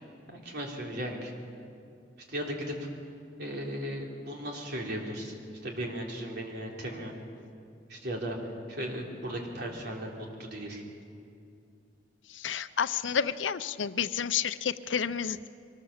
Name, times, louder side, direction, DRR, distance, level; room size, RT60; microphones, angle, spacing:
voice 1, 0.3-1.3 2.3-2.9 3.4-5.3 5.6-7.1 7.9-8.4 8.7-10.8, equal, 60° right, -1 dB, 3.7 m, -36 dB
voice 2, 12.3-15.5, left 7 dB, 90° left, 13 dB, 0.6 m, -30 dB
23.5 x 19.5 x 7.3 m, 2.5 s
head